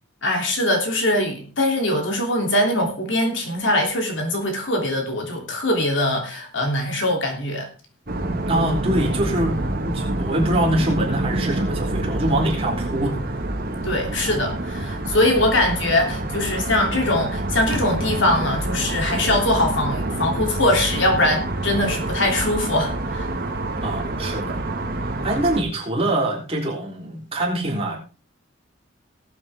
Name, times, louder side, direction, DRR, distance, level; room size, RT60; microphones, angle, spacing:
voice 1, 0.2-7.7 13.8-23.3, left 1 dB, 65° left, 2 dB, 3.1 m, -22 dB
sound 1, 8.1-25.6, right 1 dB, 45° right, 1.8 m, -27 dB
voice 2, 8.5-9.6 9.8-13.4 23.8-24.6 24.9-28.0, right 1 dB, 30° right, -3 dB, 3.6 m, -24 dB
19.0 x 8.5 x 3.6 m, 0.35 s
head